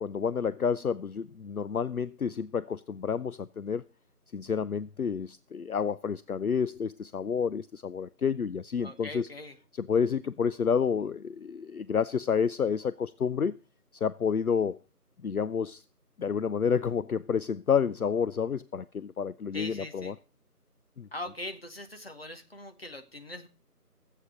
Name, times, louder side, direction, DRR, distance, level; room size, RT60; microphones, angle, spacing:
voice 1, 0.0-3.8 4.3-9.3 9.8-13.6 14.0-14.8 15.2-15.8 16.2-20.1 21.0-21.1, left 6 dB, 65° left, 0.6 m, -29 dB
voice 2, 8.8-9.6 19.5-20.1 21.1-23.5, left 1 dB, 40° left, 1.2 m, -41 dB
14.0 x 8.4 x 5.3 m
figure-of-eight pair, 170°, 47 cm